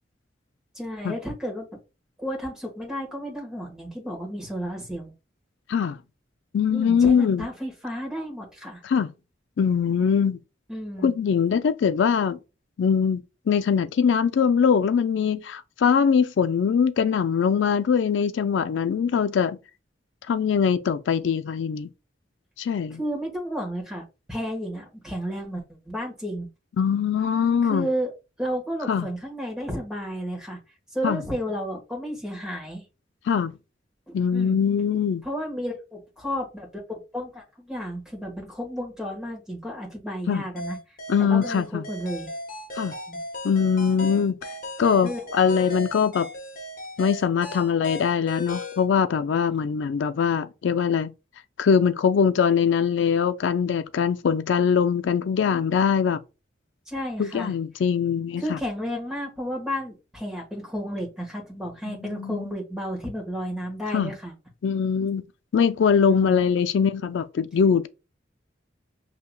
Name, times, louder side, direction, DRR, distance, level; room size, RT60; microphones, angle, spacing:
voice 1, 0.7-1.7 2.2-5.1 6.7-8.8 10.7-11.1 23.0-26.5 27.6-28.1 28.4-30.6 30.9-32.8 34.1-34.6 35.2-40.8 41.2-42.3 43.1-43.2 45.0-45.2 56.9-57.5 58.4-64.3 66.1-66.5, equal, 5° right, 1.4 m, -32 dB
voice 2, 6.5-7.5 8.8-9.1 9.6-10.4 11.0-12.4 12.8-13.2 13.5-19.6 20.3-21.9 22.6-23.0 26.8-27.9 28.9-29.1 31.0-31.2 33.3-33.5 34.1-35.2 40.3-40.4 41.1-41.9 42.8-42.9 43.4-44.4 44.8-46.3 47.0-51.1 51.6-56.2 57.2-58.6 61.9-62.4 63.9-64.1 64.6-65.2 65.5-67.9, left 6 dB, 80° left, 0.4 m, -22 dB
sound 1, 40.6-48.8, left 1 dB, 50° left, 1.2 m, -37 dB
6.6 x 2.8 x 2.2 m
head